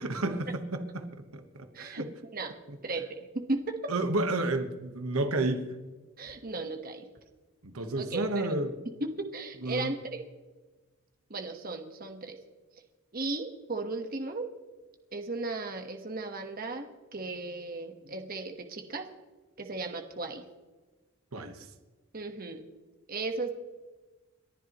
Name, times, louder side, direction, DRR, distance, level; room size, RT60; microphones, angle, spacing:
voice 1, 0.0-2.1 2.7-2.8 3.9-5.7 7.6-8.7 9.6-9.9 21.3-21.7, right 2 dB, 85° right, 7 dB, 1.2 m, -31 dB
voice 2, 1.7-2.1 2.3-2.5 2.8-3.9 6.2-7.1 8.0-8.5 9.0-10.2 11.3-12.4 13.1-14.5 15.1-19.0 19.6-20.4 22.1-22.6 23.1-23.6, right 3 dB, 45° right, 5 dB, 1.3 m, -35 dB
29.5 x 11.0 x 3.0 m, 1.3 s
head